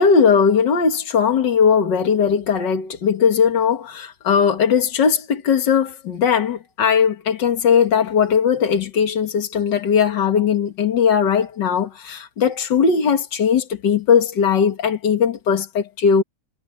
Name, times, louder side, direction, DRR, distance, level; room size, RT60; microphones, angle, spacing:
voice 1, 0.0-16.2, left 6 dB, 80° left, 2.3 m, -18 dB
omnidirectional pair, 1.9 m